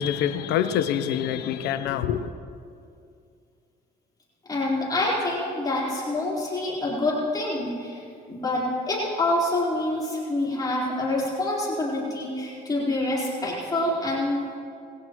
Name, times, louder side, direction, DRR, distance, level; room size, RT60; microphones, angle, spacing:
voice 1, 0.0-2.3, left 9 dB, 85° left, 0.7 m, -25 dB
voice 2, 4.5-14.4, left 1 dB, 20° left, 4.1 m, -26 dB
20.0 x 16.0 x 3.1 m
cardioid pair, 110°, 17 cm